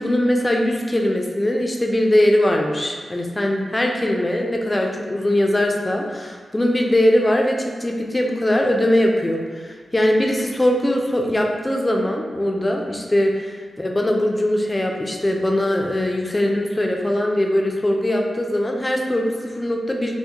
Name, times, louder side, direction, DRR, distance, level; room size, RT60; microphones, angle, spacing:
voice 1, 0.0-13.3 13.8-20.2, left 1 dB, 25° left, 1 dB, 0.4 m, -21 dB
2.3 x 2.1 x 2.8 m, 1.5 s
supercardioid pair, 40°, 0 cm